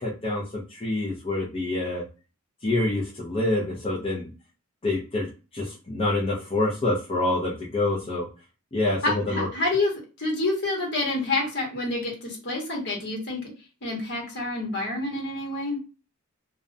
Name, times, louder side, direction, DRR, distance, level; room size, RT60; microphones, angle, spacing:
voice 1, 0.0-2.0 2.6-4.3 4.8-8.3 8.7-9.5, left 2 dB, 25° left, -5 dB, 0.5 m, -27 dB
voice 2, 9.0-9.9 10.2-13.4 13.8-15.8, left 2 dB, 55° left, -2 dB, 1.2 m, -28 dB
2.4 x 2.1 x 2.5 m, 0.32 s
head